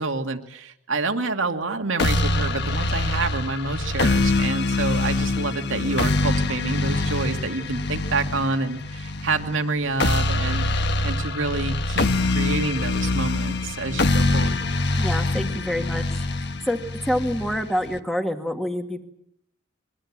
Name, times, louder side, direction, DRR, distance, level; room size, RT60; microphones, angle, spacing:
voice 1, 0.0-14.6, right 3 dB, 85° right, 5 dB, 2.4 m, -28 dB
sound 1, 2.0-18.0, left 2 dB, 60° left, 1.3 m, -24 dB
voice 2, 15.0-16.0 16.7-19.0, equal, ahead, 5 dB, 2.1 m, -26 dB
25.0 x 23.0 x 7.5 m, 0.76 s
head